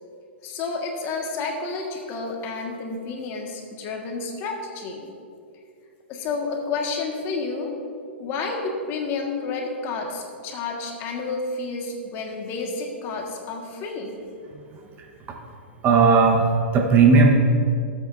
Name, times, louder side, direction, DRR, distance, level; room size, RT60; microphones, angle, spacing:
voice 1, 0.4-5.1 6.1-7.7 8.2-14.1, left 4 dB, 40° left, 1 dB, 1.7 m, -30 dB
voice 2, 15.8-17.4, right 4 dB, 30° right, 1 dB, 1.2 m, -16 dB
16.5 x 8.0 x 2.7 m, 2.4 s
hypercardioid pair, 115°, 6 cm